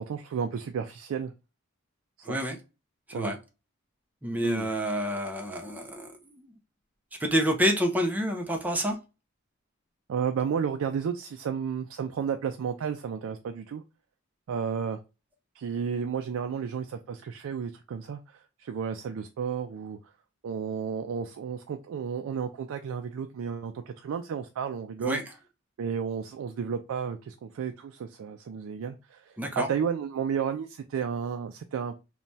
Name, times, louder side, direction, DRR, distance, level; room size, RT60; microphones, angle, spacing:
voice 1, 0.0-1.3 2.2-2.4 3.1-3.3 4.4-4.7 10.1-13.8 14.5-15.0 15.5-20.0 20.4-25.2 25.8-31.9, right 7 dB, 75° right, 0.3 m, -32 dB
voice 2, 2.2-2.6 3.1-3.4 4.2-6.5 7.2-9.0 25.0-25.2 29.4-29.7, equal, 10° right, 0.5 m, -28 dB
3.1 x 2.2 x 2.6 m
head